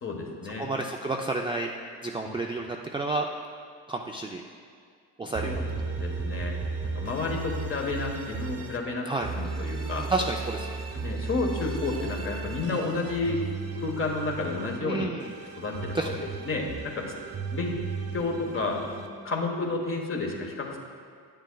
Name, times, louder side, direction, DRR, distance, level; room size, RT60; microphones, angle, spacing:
voice 1, 0.0-0.7 2.2-2.3 5.4-6.5 6.9-9.1 9.3-10.1 11.0-13.4 13.8-15.1 15.6-17.1 17.5-17.7 18.1-18.8 19.2-20.8, left 3 dB, 35° left, 1 dB, 1.2 m, -31 dB
voice 2, 0.6-1.7 2.0-3.3 3.9-4.4 5.2-5.5 9.1-9.3 10.0-10.7 14.8-15.3 15.9-16.3, right 2 dB, 15° right, 1 dB, 0.3 m, -30 dB
sound 1, 5.3-8.8 9.2-14.8 15.2-19.1, right 4 dB, 40° right, 0.9 m, -35 dB
9.1 x 9.0 x 2.3 m, 2.1 s
cardioid pair, 95°, 37 cm